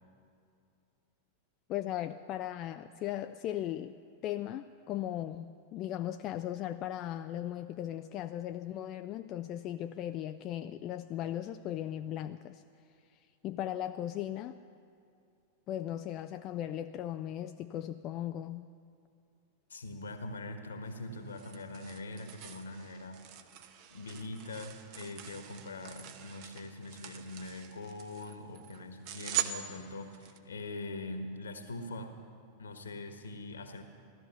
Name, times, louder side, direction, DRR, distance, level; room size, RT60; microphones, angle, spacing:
voice 1, 1.7-12.6 13.4-14.6 15.7-18.7, left 12 dB, 35° left, 9 dB, 0.4 m, -37 dB
voice 2, 19.7-23.3 23.9-32.2 32.6-33.8, left 2 dB, 70° left, 7 dB, 1.5 m, -43 dB
sound 1, 20.9-30.4, right 12 dB, 45° right, 1.0 m, -42 dB
16.0 x 13.0 x 6.7 m, 2.6 s
figure-of-eight pair, 90°, 0 cm